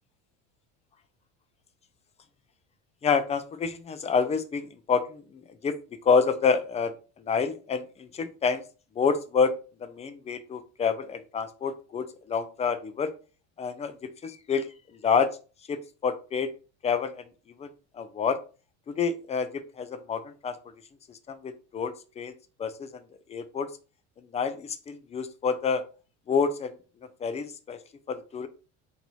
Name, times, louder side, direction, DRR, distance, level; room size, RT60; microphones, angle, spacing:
voice 1, 3.0-5.7 6.0-8.6 9.0-9.5 9.8-13.1 13.6-13.9 14.2-14.7 15.0-15.3 15.7-16.5 16.8-17.2 17.6-18.4 18.9-20.5 21.1-22.3 22.6-23.0 23.3-23.7 24.2-25.8 26.3-26.7 27.2-27.8 28.1-28.5, left 5 dB, 20° left, 10 dB, 0.4 m, -28 dB
3.9 x 2.7 x 2.9 m, 0.35 s
supercardioid pair, 105°, 37 cm